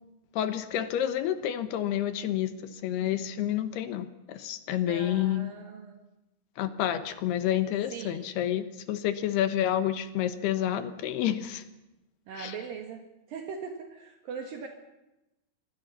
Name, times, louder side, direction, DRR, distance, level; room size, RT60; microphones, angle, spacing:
voice 1, 0.3-5.5 6.6-11.6 12.4-12.5, left 11 dB, 85° left, 10 dB, 3.3 m, -29 dB
voice 2, 4.8-6.0 7.9-8.3 12.3-14.7, right 6 dB, 65° right, 3 dB, 3.3 m, -40 dB
25.5 x 24.0 x 5.7 m, 0.95 s
omnidirectional pair, 4.6 m